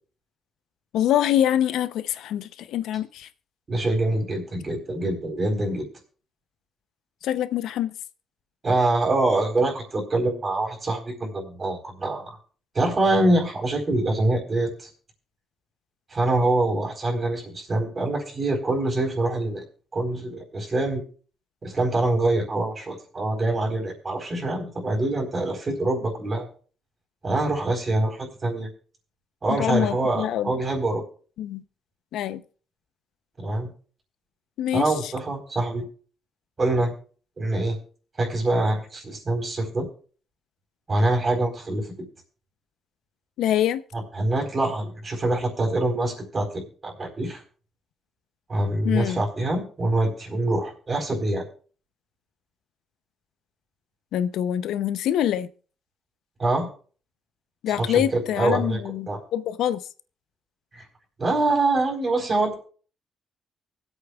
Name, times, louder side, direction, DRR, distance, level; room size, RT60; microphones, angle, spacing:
voice 1, 0.9-3.3 7.2-7.9 29.5-30.5 31.4-31.6 32.1-32.4 34.6-35.1 43.4-43.8 48.8-49.2 54.1-55.5 57.6-59.8, left 11 dB, 85° left, 0.6 m, -25 dB
voice 2, 3.7-5.9 8.6-12.3 12.7-14.9 16.1-19.6 19.9-21.0 21.6-26.5 27.2-28.7 29.4-31.0 33.4-33.7 34.7-35.8 36.6-36.9 37.4-37.8 38.2-39.9 40.9-41.9 43.9-47.4 48.5-51.4 56.4-56.7 57.7-58.8 59.1-59.2 60.7-60.8 61.2-62.6, right 2 dB, 35° right, 4.1 m, -25 dB
24.0 x 8.3 x 2.3 m
cardioid pair, 90°, 0 cm